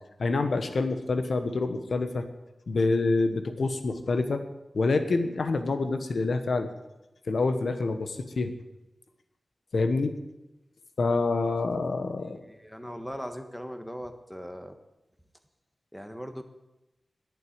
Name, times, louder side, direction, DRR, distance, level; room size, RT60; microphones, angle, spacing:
voice 1, 0.2-2.2 2.7-4.4 4.7-6.7 7.3-8.5 9.7-10.1 11.0-12.4, left 3 dB, 75° left, 8 dB, 1.2 m, -27 dB
voice 2, 12.1-14.8 15.9-16.4, equal, 5° left, 7 dB, 1.3 m, -39 dB
11.0 x 9.1 x 8.0 m, 0.98 s
wide cardioid pair, 95°, 0 cm